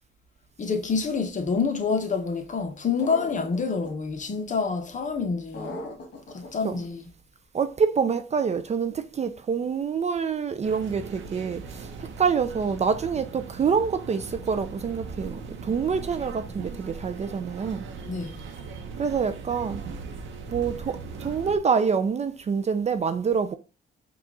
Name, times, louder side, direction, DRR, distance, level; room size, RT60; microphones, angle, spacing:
voice 1, 0.6-5.8 6.3-7.0 18.1-18.4, left 5 dB, 40° left, 0.9 m, -27 dB
sound 1, 3.0-3.9 5.5-6.5, left 1 dB, 55° left, 1.4 m, -37 dB
voice 2, 7.5-17.9 19.0-19.8 20.5-23.6, right 6 dB, 35° right, 0.4 m, -26 dB
sound 2, 10.6-21.6, right 4 dB, 75° right, 0.8 m, -39 dB
4.7 x 2.4 x 3.8 m
cardioid pair, 90°, 20 cm